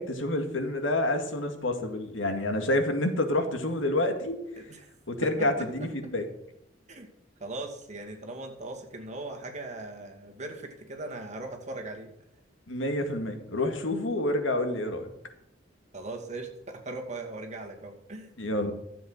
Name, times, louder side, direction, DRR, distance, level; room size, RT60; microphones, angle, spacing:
voice 1, 0.0-4.4 5.1-6.2 12.7-15.1 18.4-18.7, left 1 dB, 90° left, 6 dB, 2.1 m, -28 dB
voice 2, 5.2-6.1 6.9-7.1 7.4-12.1 15.9-18.3, right 2 dB, 40° right, 2 dB, 2.3 m, -39 dB
12.5 x 7.8 x 6.5 m, 0.82 s
head